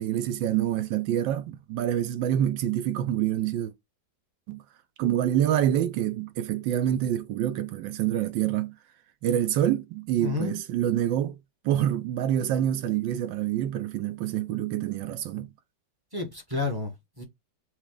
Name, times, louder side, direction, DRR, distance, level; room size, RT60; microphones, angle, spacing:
voice 1, 0.0-3.7 4.5-4.6 5.0-8.7 9.2-11.4 11.6-15.5, right 11 dB, 85° right, 1.4 m, -26 dB
voice 2, 10.2-10.6 16.1-17.2, left 3 dB, 20° right, 0.6 m, -31 dB
5.9 x 2.1 x 3.7 m
omnidirectional pair, 2.0 m